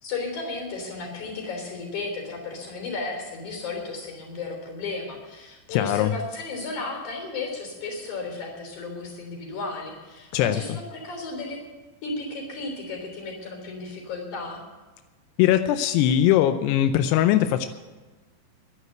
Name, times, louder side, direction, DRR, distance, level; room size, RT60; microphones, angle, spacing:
voice 1, 0.0-11.6 12.0-14.6, left 3 dB, 40° left, 2 dB, 4.5 m, -34 dB
voice 2, 5.7-6.1 10.3-10.6 15.4-17.7, left 11 dB, 85° left, 9 dB, 2.3 m, -20 dB
11.5 x 11.5 x 7.9 m, 1.3 s
omnidirectional pair, 5.5 m